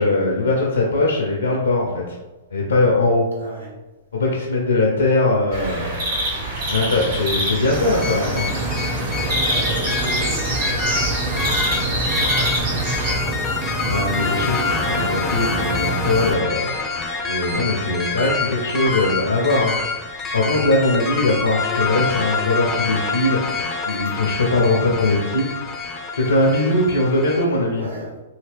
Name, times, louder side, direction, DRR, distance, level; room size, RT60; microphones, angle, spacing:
voice 1, 0.0-2.2 2.5-3.3 4.1-5.9 6.7-8.5 13.9-16.7 17.3-19.9 20.3-23.4 23.8-25.7 26.1-27.8, left 2 dB, 75° left, -2 dB, 0.6 m, -20 dB
voice 2, 3.4-3.7 5.6-6.0 6.5-7.0 9.4-13.5 27.7-28.1, right 1 dB, 80° right, -4 dB, 1.1 m, -38 dB
sound 1, 5.5-13.1, right 1 dB, 55° right, 1.4 m, -25 dB
sound 2, 7.7-16.3, right 1 dB, 25° right, 0.6 m, -27 dB
sound 3, 8.0-27.4, left 4 dB, 20° left, 0.5 m, -27 dB
2.8 x 2.7 x 3.4 m, 1.1 s
figure-of-eight pair, 110°, 0 cm